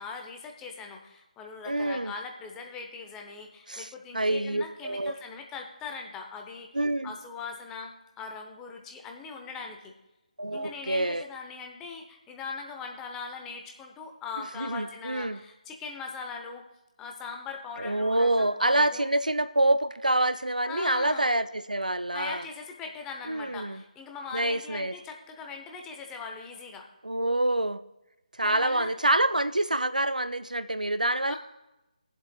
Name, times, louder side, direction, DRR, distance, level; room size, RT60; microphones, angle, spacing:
voice 1, 0.0-6.7 7.0-9.9 10.5-16.6 17.0-19.1 20.6-21.3 22.1-26.8 28.4-28.9 31.2-31.4, left 5 dB, 10° left, 2 dB, 0.8 m, -40 dB
voice 2, 1.7-2.1 3.7-3.9 4.1-5.1 6.7-7.1 10.4-11.2 14.6-15.4 17.8-22.5 23.3-23.8 24.3-24.9 27.0-27.8 28.4-31.4, right 1 dB, 85° right, 13 dB, 0.5 m, -26 dB
22.0 x 7.5 x 2.3 m, 0.97 s
figure-of-eight pair, 150°, 4 cm